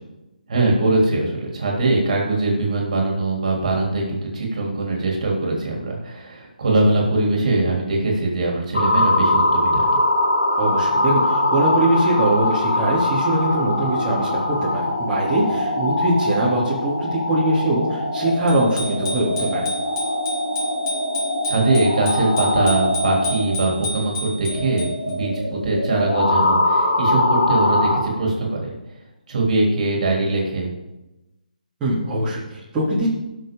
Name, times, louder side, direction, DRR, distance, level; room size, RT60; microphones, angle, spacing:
voice 1, 0.5-9.8 21.4-28.7 29.3-30.7, right 2 dB, 55° right, -1 dB, 3.5 m, -22 dB
sound 1, 8.7-28.0, left 1 dB, 80° left, 4.0 m, -22 dB
voice 2, 10.6-19.7 31.8-33.1, right 1 dB, 15° right, -9 dB, 3.0 m, -22 dB
Bicycle bell, 18.5-25.1, left 1 dB, 30° left, 3.5 m, -31 dB
18.0 x 6.5 x 3.9 m, 1.0 s
hypercardioid pair, 155°, 5 cm